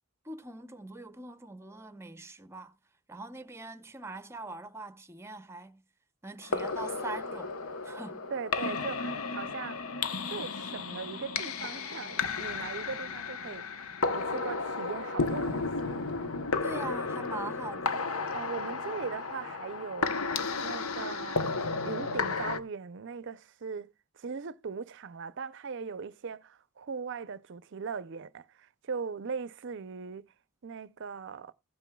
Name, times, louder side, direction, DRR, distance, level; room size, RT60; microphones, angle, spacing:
voice 1, 0.2-2.8 3.1-5.8 6.2-7.5 7.8-8.3 16.6-18.0, right 2 dB, 10° right, 0.7 m, -42 dB
sound 1, 6.4-22.6, left 4 dB, 75° left, 0.9 m, -33 dB
voice 2, 8.3-16.1 18.3-20.3 20.6-21.5 21.8-30.3 30.6-31.5, right 5 dB, 55° right, 0.5 m, -39 dB
16.0 x 9.1 x 2.3 m
head